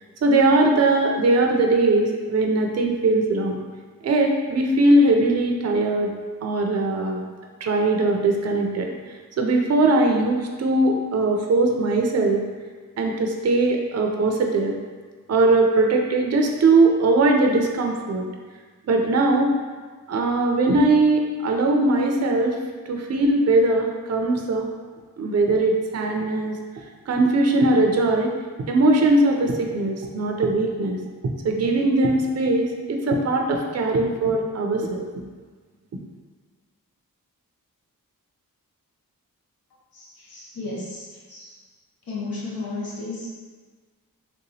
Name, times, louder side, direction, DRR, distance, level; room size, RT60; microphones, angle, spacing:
voice 1, 0.2-3.6 4.0-6.1 6.4-7.2 7.6-12.4 13.0-14.7 15.3-18.2 18.9-19.5 20.1-22.6 22.9-24.7 25.2-26.6 27.1-28.3 28.7-31.0 31.4-35.1, right 2 dB, 45° right, 2 dB, 0.4 m, -20 dB
voice 2, 39.9-41.6 42.1-43.3, left 3 dB, 85° left, -5 dB, 1.0 m, -34 dB
3.4 x 2.9 x 2.7 m, 1.5 s
wide cardioid pair, 75°, 35 cm